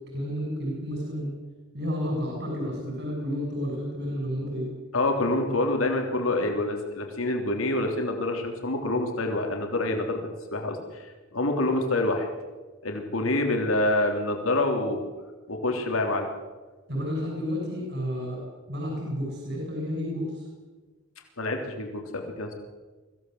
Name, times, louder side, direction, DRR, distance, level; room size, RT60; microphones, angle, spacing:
voice 1, 0.1-1.3 1.7-4.7 16.9-18.4 18.7-20.4, equal, 55° right, -1 dB, 6.9 m, -31 dB
voice 2, 4.9-10.2 10.5-12.3 12.8-15.0 15.5-16.3 21.4-22.5, left 2 dB, 85° left, 3 dB, 3.4 m, -27 dB
23.5 x 16.5 x 8.0 m, 1.3 s
head